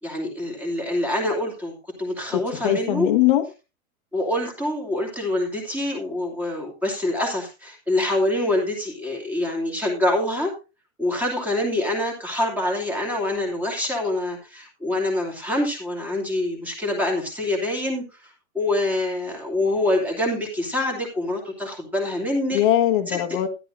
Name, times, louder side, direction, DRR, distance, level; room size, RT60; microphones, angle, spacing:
voice 1, 0.0-3.1 4.1-10.5 11.0-22.6 23.1-23.2, left 1 dB, 5° right, 2.6 m, -25 dB
voice 2, 2.3-3.4 22.5-23.5, left 13 dB, 35° left, 1.5 m, -21 dB
13.5 x 11.0 x 2.6 m
supercardioid pair, 175°, 44 cm